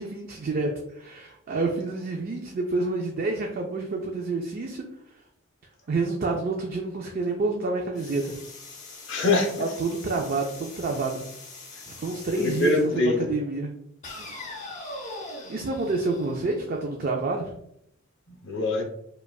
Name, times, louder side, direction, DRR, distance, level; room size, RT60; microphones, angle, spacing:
voice 1, 0.0-4.8 5.9-8.4 9.6-11.2 11.9-12.9 13.3-13.7 15.5-17.5, right 3 dB, 45° right, 1 dB, 0.4 m, -28 dB
sound 1, 8.0-12.9 14.0-17.0, left 2 dB, 35° left, 0.9 m, -42 dB
voice 2, 9.1-9.7 12.4-13.2 18.3-18.8, left 2 dB, 65° left, 1 dB, 0.9 m, -24 dB
5.0 x 2.3 x 2.3 m, 0.73 s
head